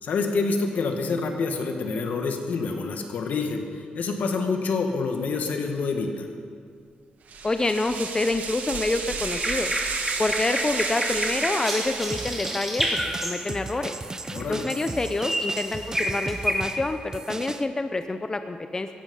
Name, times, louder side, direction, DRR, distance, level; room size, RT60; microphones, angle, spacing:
voice 1, 0.0-6.3 14.3-14.7, left 4 dB, 70° left, 4 dB, 1.9 m, -27 dB
sound 1, 7.3-12.9, right 5 dB, 70° right, 1.7 m, -32 dB
voice 2, 7.4-9.7 10.2-13.9 14.5-18.9, left 2 dB, 20° left, 8 dB, 0.7 m, -27 dB
sound 2, 9.3-13.8 14.2-14.9 15.2-16.5, equal, 5° right, 2.7 m, -29 dB
sound 3, 12.1-17.6, right 3 dB, 25° right, 0.7 m, -36 dB
17.5 x 15.0 x 5.5 m, 2.2 s
cardioid pair, 115°, 3 cm